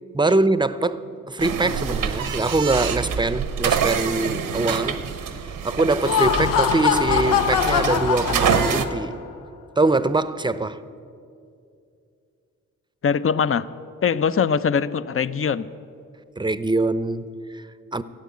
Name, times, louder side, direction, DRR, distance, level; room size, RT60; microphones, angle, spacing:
voice 1, 0.1-5.0 5.6-9.2 9.8-10.8 16.4-18.0, right 2 dB, 15° right, 0.7 m, -23 dB
sound 1, 1.4-8.8, right 7 dB, 80° right, 0.9 m, -26 dB
Laughter, 5.9-9.2, left 9 dB, 90° left, 0.6 m, -23 dB
voice 2, 13.0-13.7 14.0-15.7, left 6 dB, 40° left, 0.6 m, -22 dB
14.5 x 8.5 x 8.5 m
supercardioid pair, 40°, 33 cm